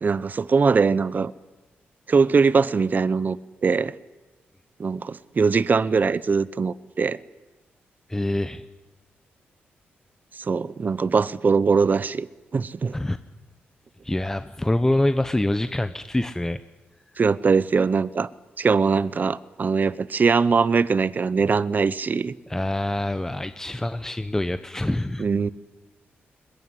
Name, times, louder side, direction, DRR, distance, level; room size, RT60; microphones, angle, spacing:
voice 1, 0.0-1.3 2.1-3.4 3.6-3.9 4.8-7.2 10.4-12.3 12.5-12.9 17.2-18.3 18.6-22.3 25.2-25.5, right 5 dB, 45° right, 18 dB, 0.8 m, -21 dB
voice 2, 8.1-8.6 12.9-13.2 14.0-16.6 22.5-25.3, left 1 dB, 10° left, 11 dB, 0.9 m, -25 dB
21.5 x 21.0 x 10.0 m, 1.2 s
cardioid pair, 75°, 4 cm